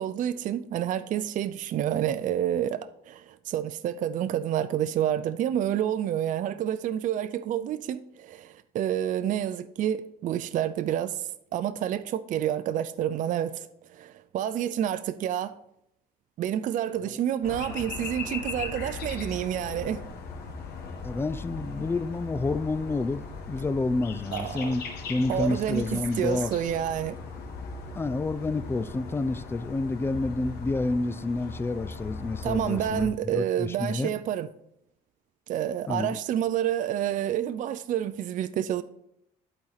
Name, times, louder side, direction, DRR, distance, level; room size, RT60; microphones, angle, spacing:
voice 1, 0.0-15.5 16.4-20.0 24.3-24.7 25.3-27.2 32.4-34.5 35.5-38.8, right 10 dB, 50° right, 0.4 m, -29 dB
sound 1, 17.4-33.1, left 4 dB, 70° left, 1.5 m, -39 dB
voice 2, 21.0-24.8 25.1-26.6 27.9-34.1 35.9-36.2, left 3 dB, 15° left, 0.4 m, -29 dB
11.5 x 4.3 x 4.0 m
cardioid pair, 110°, 17 cm